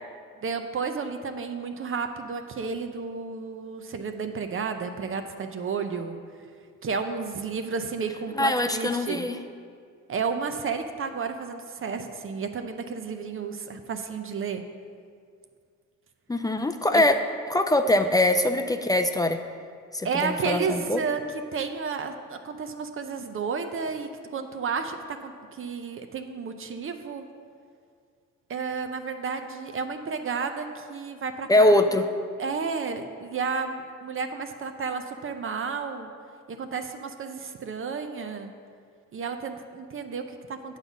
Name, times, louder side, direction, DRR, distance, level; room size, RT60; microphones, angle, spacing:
voice 1, 0.4-6.2 6.8-9.3 10.1-14.6 16.9-17.0 20.0-21.2 21.5-27.3 28.5-31.8 32.4-36.1 36.5-38.5 39.1-40.8, right 5 dB, 45° right, 7 dB, 0.7 m, -32 dB
voice 2, 8.4-9.4 16.3-17.1 17.5-19.4 19.9-21.0 31.5-32.0, left 1 dB, 15° left, 6 dB, 0.4 m, -22 dB
9.0 x 4.0 x 7.2 m, 2.2 s
cardioid pair, 90°, 30 cm